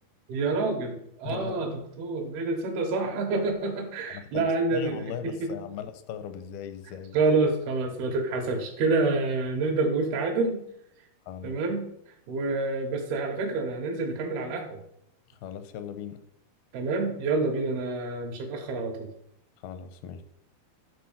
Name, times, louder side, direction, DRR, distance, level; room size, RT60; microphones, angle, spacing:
voice 1, 0.3-1.7 2.0-5.5 7.1-10.6 11.4-11.9 12.3-14.8 16.7-19.1, right 3 dB, 80° right, 1 dB, 3.4 m, -27 dB
voice 2, 1.3-1.8 4.1-7.2 11.3-11.6 15.3-16.2 19.6-20.2, left 8 dB, 90° left, 10 dB, 2.7 m, -38 dB
13.0 x 4.3 x 7.2 m, 0.75 s
omnidirectional pair, 4.3 m